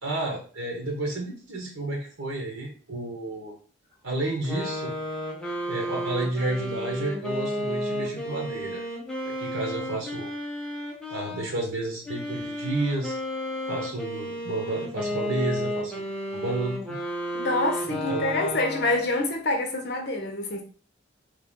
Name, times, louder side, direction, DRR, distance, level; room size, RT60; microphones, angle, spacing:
voice 1, 0.0-3.5 4.0-4.9 5.7-8.8 9.4-10.3 11.1-13.2 13.7-16.0 16.3-17.0 17.9-18.5, right 2 dB, 85° right, 1.2 m, -31 dB
sound 1, 4.4-11.5 12.0-19.2, equal, 5° left, 0.7 m, -32 dB
voice 2, 17.3-20.6, left 2 dB, 55° left, 0.8 m, -26 dB
3.4 x 2.6 x 3.6 m
head